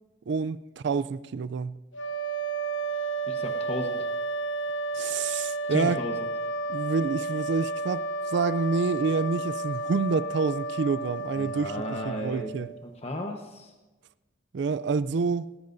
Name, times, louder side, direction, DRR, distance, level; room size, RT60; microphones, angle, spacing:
voice 1, 0.3-1.8 4.9-6.0 6.7-11.7 12.0-12.7 14.5-15.4, right 4 dB, 65° right, 0.4 m, -28 dB
sound 1, 1.9-12.9, right 3 dB, 80° left, 0.8 m, -32 dB
voice 2, 3.3-4.1 5.7-6.2 11.4-13.7, left 1 dB, 35° left, 1.1 m, -35 dB
19.0 x 16.0 x 2.7 m
head